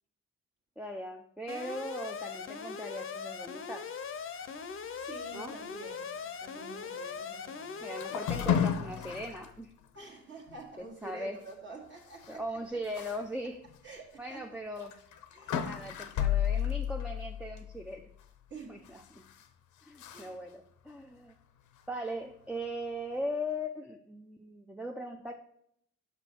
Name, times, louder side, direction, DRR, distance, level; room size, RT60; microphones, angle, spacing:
voice 1, 0.8-3.9 5.3-5.5 7.8-9.7 10.8-11.4 12.3-13.6 14.2-15.1 15.6-18.1 18.7-19.2 19.9-21.3 21.9-25.3, equal, 5° right, 1 dB, 0.5 m, -39 dB
Alarm, 1.5-8.5, left 6 dB, 45° left, 0.7 m, -40 dB
voice 2, 4.9-7.9 9.9-12.4 13.8-14.6 15.3-15.7 18.5-18.8 20.1-20.4, right 3 dB, 40° right, -3 dB, 1.5 m, -48 dB
sound 1, 8.0-9.5 10.0-10.1 10.5-10.6 12.2-12.3 12.9-13.2 13.7-13.8 14.8-18.0 18.9-19.4 20.0-20.3, left 9 dB, 80° left, 0.8 m, -32 dB
6.1 x 6.0 x 4.4 m, 0.72 s
cardioid pair, 90°, 30 cm